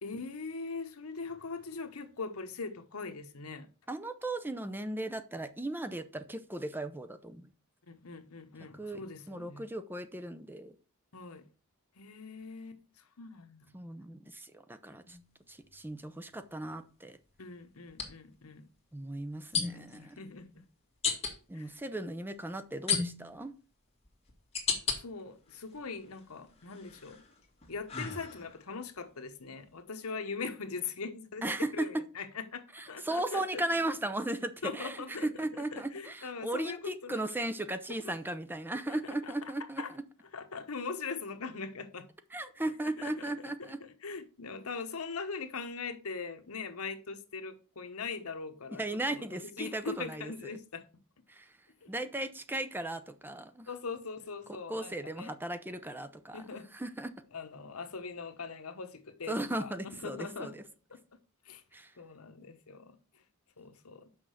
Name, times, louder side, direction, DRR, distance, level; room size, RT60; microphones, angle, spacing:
voice 1, 0.0-3.7 7.9-9.7 11.1-11.5 12.0-13.8 17.4-18.6 19.7-20.6 21.5-21.8 24.7-27.2 27.7-31.4 31.7-33.6 34.6-37.2 38.9-39.0 39.2-39.5 39.8-39.9 40.3-42.1 42.8-43.3 43.6-50.8 51.8-51.9 53.7-55.3 56.3-56.7 57.3-60.5 60.9-61.2 61.4-61.6 62.0-63.0 63.6-64.1, left 4 dB, 85° left, 1.0 m, -41 dB
voice 2, 3.9-7.5 8.7-9.0 9.3-10.8 13.7-15.2 15.5-17.2 18.9-20.2 21.5-23.5 31.4-31.7 32.7-39.8 42.3-43.8 48.8-50.3 51.3-51.5 51.9-53.7 54.7-57.1 59.3-60.6 61.7-61.9, right 1 dB, 10° right, 0.6 m, -37 dB
sound 1, 15.1-15.3 17.9-18.1 19.5-20.0 21.0-21.3 22.9-23.4 24.0-25.0 25.5-26.2 26.7-28.7, left 5 dB, 30° left, 2.0 m, -34 dB
6.1 x 5.5 x 6.3 m
head